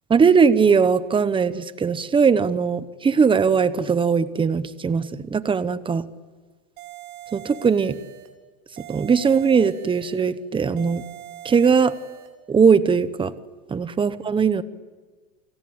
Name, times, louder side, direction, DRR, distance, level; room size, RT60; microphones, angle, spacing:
voice 1, 0.1-6.1 7.3-8.0 8.9-11.0 11.4-11.9 12.5-13.3 13.7-14.6, right 6 dB, 10° right, 14 dB, 1.0 m, -19 dB
sound 1, 6.8-8.4 8.8-10.4 10.8-12.4, right 12 dB, 70° right, 4.0 m, -42 dB
29.5 x 23.0 x 8.9 m, 1.4 s
supercardioid pair, 150°, 44 cm